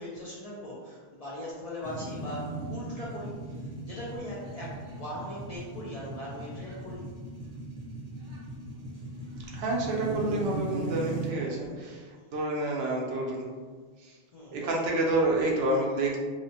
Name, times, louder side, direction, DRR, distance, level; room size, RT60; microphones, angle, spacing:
voice 1, 0.0-7.2 11.3-11.6 14.3-14.8, left 1 dB, 50° left, -6 dB, 0.4 m, -40 dB
sound 1, 1.8-11.3, right 2 dB, 45° right, 0.7 m, -38 dB
voice 2, 9.5-12.0 12.3-13.5 14.0-14.1 14.5-16.2, right 2 dB, 75° right, -2 dB, 0.8 m, -28 dB
2.9 x 2.1 x 2.7 m, 1.5 s
omnidirectional pair, 1.1 m